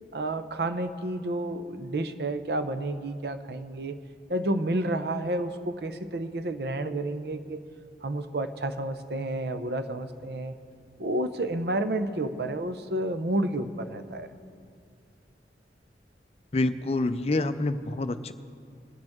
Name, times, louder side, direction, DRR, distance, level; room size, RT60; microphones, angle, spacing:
voice 1, 0.1-4.0 4.3-7.6 8.0-10.5 11.0-14.3, right 1 dB, 65° right, 9 dB, 0.7 m, -30 dB
voice 2, 16.5-18.3, left 2 dB, 35° left, 10 dB, 0.5 m, -27 dB
22.0 x 7.8 x 3.6 m, 2.3 s
head